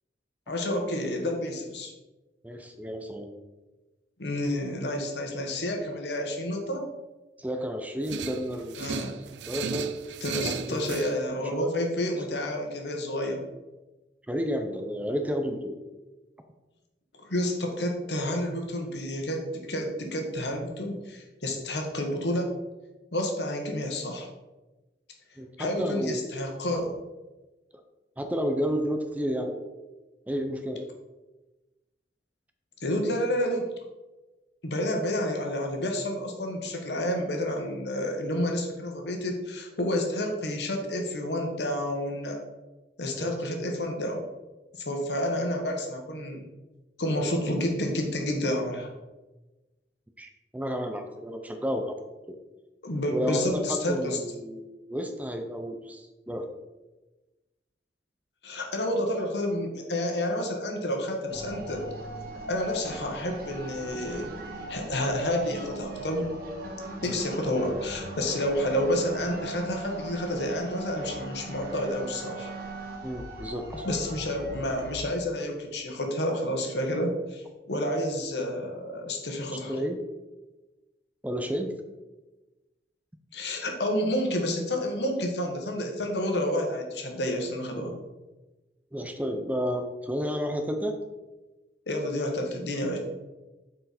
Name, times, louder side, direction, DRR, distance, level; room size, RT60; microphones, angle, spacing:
voice 1, 0.5-1.9 4.2-6.9 8.8-9.1 10.2-13.5 17.1-22.5 23.1-24.3 25.6-26.9 32.8-33.7 34.6-42.4 43.0-44.2 44.7-46.4 47.0-48.9 52.8-54.2 58.4-61.8 62.5-64.3 64.7-66.3 67.0-72.5 73.8-79.7 83.3-88.0 91.9-93.0, left 1 dB, 75° left, 2 dB, 1.4 m, -29 dB
voice 2, 2.4-3.3 7.4-8.9 9.5-9.9 10.4-11.0 11.4-11.7 14.3-15.8 25.4-26.4 28.2-29.6 30.3-30.9 43.2-43.3 50.2-52.0 52.3-52.4 53.1-56.5 67.0-67.2 73.0-73.9 79.7-80.0 81.2-81.7 88.9-91.0, equal, 10° right, 5 dB, 0.6 m, -31 dB
sound 1, 8.1-11.1, right 6 dB, 85° right, 0.4 m, -35 dB
sound 2, 61.3-75.0, right 2 dB, 55° right, 1.4 m, -40 dB
7.8 x 4.5 x 4.2 m, 1.1 s
head